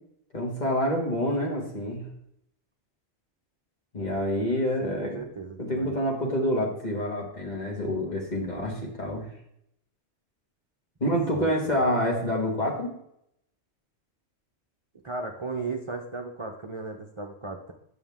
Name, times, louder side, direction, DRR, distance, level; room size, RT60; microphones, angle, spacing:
voice 1, 0.3-2.0 3.9-5.2 5.6-9.3 11.0-12.9, equal, 40° left, -1 dB, 2.0 m, -27 dB
voice 2, 4.8-5.9 11.3-11.8 15.0-17.7, right 3 dB, 35° right, 2 dB, 0.6 m, -36 dB
9.4 x 6.4 x 3.6 m, 0.74 s
omnidirectional pair, 1.2 m